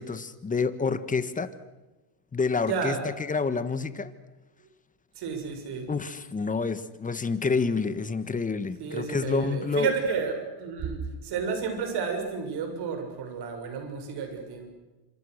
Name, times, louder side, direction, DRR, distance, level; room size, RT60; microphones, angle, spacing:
voice 1, 0.0-1.5 2.3-3.0 3.3-4.1 5.9-9.9, left 4 dB, 15° left, 12 dB, 1.5 m, -28 dB
voice 2, 2.7-3.0 5.2-5.9 8.8-14.7, right 5 dB, 50° right, 5 dB, 7.0 m, -31 dB
27.5 x 26.5 x 6.6 m, 1.1 s
supercardioid pair, 120°, 49 cm